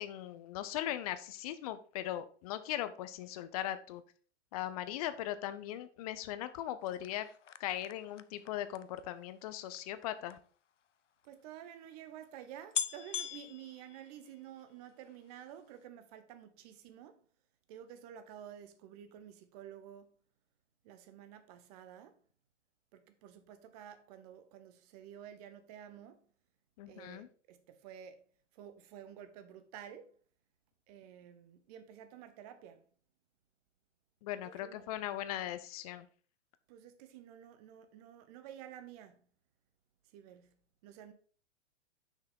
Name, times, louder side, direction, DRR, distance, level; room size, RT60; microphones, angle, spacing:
voice 1, 0.0-4.0 4.5-7.3 7.6-10.4 26.8-27.3 34.2-36.1, left 12 dB, 30° left, 0.6 m, -39 dB
sound 1, 6.8-10.4 11.2-11.3 11.5-11.6 12.2-12.3 12.7-14.6 15.0-15.5 15.7-15.8, left 8 dB, 75° left, 0.5 m, -42 dB
voice 2, 11.2-17.2 17.7-20.1 20.8-22.2 22.9-26.3 26.9-28.2 28.5-30.1 30.9-32.9 34.4-34.8 36.7-39.3 40.1-41.1, right 10 dB, 35° right, 0.9 m, -51 dB
6.3 x 6.0 x 3.7 m
figure-of-eight pair, 110°, 36 cm